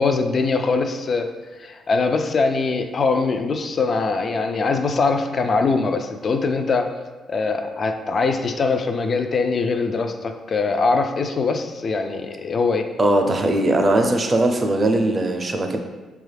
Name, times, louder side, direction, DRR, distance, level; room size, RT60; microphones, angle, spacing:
voice 1, 0.0-1.3 1.6-6.9 7.3-12.9, left 4 dB, 45° left, 6 dB, 0.3 m, -22 dB
voice 2, 13.0-15.8, right 1 dB, 30° right, 4 dB, 0.5 m, -19 dB
4.7 x 2.3 x 3.3 m, 1.3 s
cardioid pair, 90°, 0 cm